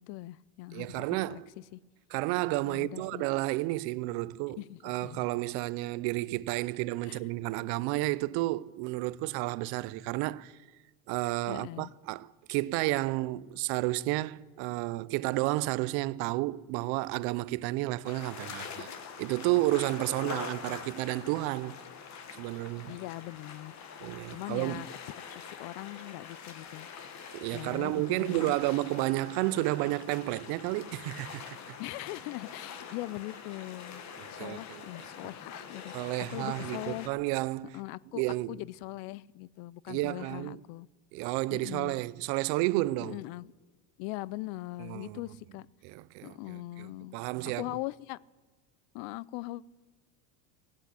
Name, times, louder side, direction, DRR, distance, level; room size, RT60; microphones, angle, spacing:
voice 1, 0.0-1.4 1.7-1.8 2.6-3.2 4.6-5.3 7.0-7.2 11.5-11.9 20.2-20.8 22.9-23.8 24.3-26.9 27.5-28.6 31.8-34.0 34.3-37.1 37.7-38.2 38.5-40.9 41.5-42.0 43.0-43.5 44.0-45.7 46.2-47.1 47.6-48.2 48.9-49.6, left 19 dB, 60° left, 0.5 m, -41 dB
voice 2, 0.7-1.5 2.1-10.5 11.1-18.9 19.2-21.8 22.4-22.9 24.0-24.8 27.3-31.6 34.2-34.9 35.9-37.8 38.1-38.6 39.9-40.6 41.1-43.2 44.8-45.2 45.8-47.6, right 19 dB, 60° right, 0.6 m, -31 dB
sound 1, 18.0-37.1, left 6 dB, 40° left, 1.4 m, -45 dB
17.5 x 8.3 x 8.2 m
supercardioid pair, 130°, 43 cm